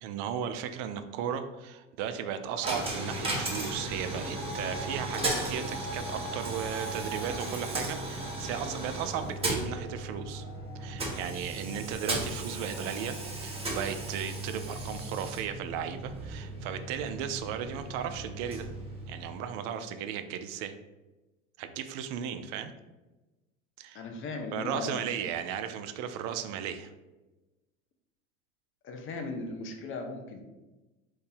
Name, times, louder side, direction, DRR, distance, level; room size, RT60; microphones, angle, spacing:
voice 1, 0.0-10.4 10.8-13.2 13.4-18.7 19.1-20.7 21.6-22.7 23.8-24.0 24.5-26.9, right 8 dB, 50° right, 9 dB, 0.4 m, -36 dB
Coin (dropping), 2.6-19.6, right 2 dB, 15° right, 0.9 m, -36 dB
sound 1, 7.0-11.8, left 4 dB, 55° left, 1.3 m, -55 dB
voice 2, 23.9-25.0 26.4-26.5 28.8-30.5, left 3 dB, 35° left, 4 dB, 0.6 m, -37 dB
2.7 x 2.6 x 3.8 m, 1.1 s
hypercardioid pair, 90°, 38 cm